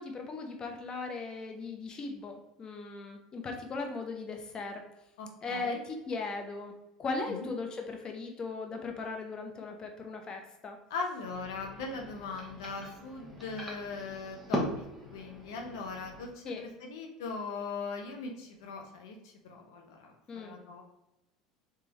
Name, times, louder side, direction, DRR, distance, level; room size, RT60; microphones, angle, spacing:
voice 1, 0.0-4.8 5.4-6.7 7.0-10.8 16.5-16.6 20.3-20.6, left 3 dB, 35° left, 3 dB, 0.7 m, -38 dB
voice 2, 5.2-5.8 7.3-7.5 10.9-14.8 15.1-20.8, left 4 dB, 80° left, 3 dB, 0.7 m, -40 dB
sound 1, 11.2-16.3, equal, ahead, 1.2 m, -40 dB
3.5 x 3.2 x 3.0 m, 0.91 s
hypercardioid pair, 85°, 2 cm